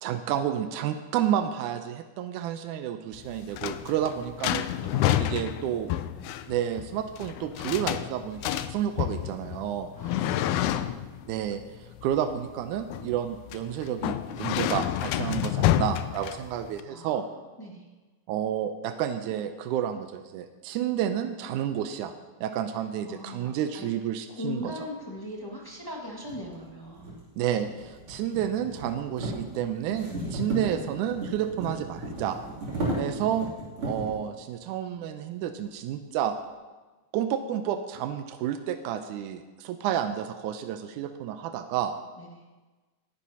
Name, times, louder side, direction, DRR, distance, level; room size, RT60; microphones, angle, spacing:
voice 1, 0.0-4.6 5.2-5.9 6.5-9.9 11.3-17.2 18.3-22.1 22.4-24.7 27.4-32.4 33.0-33.5 33.8-36.3 37.1-42.0, right 10 dB, 85° right, 8 dB, 2.1 m, -30 dB
sound 1, 3.1-16.8, left 12 dB, 80° left, 1.9 m, -29 dB
voice 2, 4.8-5.3 5.6-5.7 6.1-6.3 10.0-11.0 16.9-17.1 17.6-17.9 23.0-23.9 24.3-27.1 30.2-30.5 32.7-32.9 42.2-42.4, left 1 dB, 15° left, -3 dB, 0.8 m, -40 dB
sound 2, 25.4-25.5 26.2-34.2, right 1 dB, 45° right, 3.7 m, -35 dB
19.0 x 10.5 x 2.8 m, 1.2 s
omnidirectional pair, 3.6 m